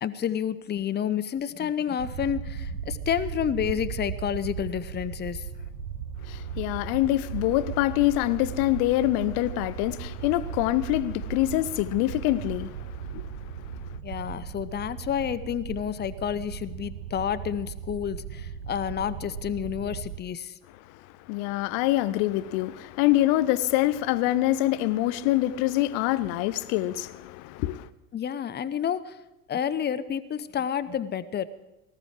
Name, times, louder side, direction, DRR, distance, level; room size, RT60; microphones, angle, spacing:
voice 1, 0.0-5.5 14.0-20.6 28.1-29.2 29.5-31.5, left 9 dB, 20° left, 0.8 m, -30 dB
sound 1, 2.0-20.2, right 7 dB, 85° right, 0.9 m, -37 dB
voice 2, 6.2-14.0 20.8-27.9, left 15 dB, 50° left, 0.8 m, -25 dB
18.5 x 14.0 x 4.9 m
hypercardioid pair, 80°, 46 cm